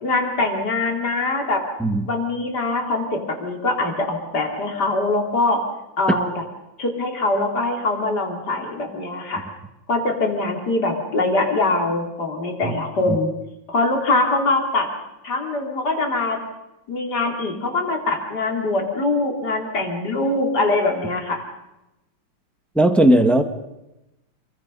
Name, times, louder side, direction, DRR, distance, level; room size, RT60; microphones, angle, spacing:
voice 1, 0.0-1.6 2.1-3.1 3.4-5.6 6.0-6.3 6.8-9.4 9.9-13.3 13.7-14.9 15.2-16.4 16.9-21.4, left 2 dB, 50° left, 2 dB, 4.1 m, -23 dB
voice 2, 22.7-23.4, right 1 dB, ahead, 5 dB, 1.3 m, -16 dB
29.0 x 22.5 x 5.5 m, 0.94 s
omnidirectional pair, 2.3 m